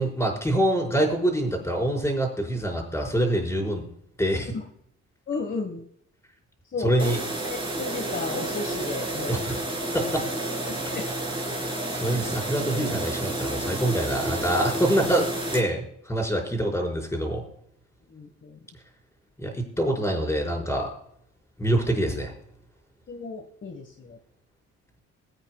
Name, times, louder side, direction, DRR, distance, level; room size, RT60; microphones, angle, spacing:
voice 1, 0.0-3.8 4.2-4.5 6.8-7.2 9.3-9.6 9.9-10.2 11.7-17.4 19.4-20.9 21.6-22.3, right 1 dB, 10° left, 0 dB, 5.2 m, -25 dB
voice 2, 5.3-5.9 6.7-7.2 7.4-9.5 10.7-11.1 18.1-18.6 23.1-24.2, left 3 dB, 40° left, 4 dB, 1.5 m, -34 dB
sound 1, 7.0-15.6, right 1 dB, 15° right, 4.0 m, -30 dB
21.5 x 8.9 x 2.3 m, 0.69 s
cardioid pair, 90°, 30 cm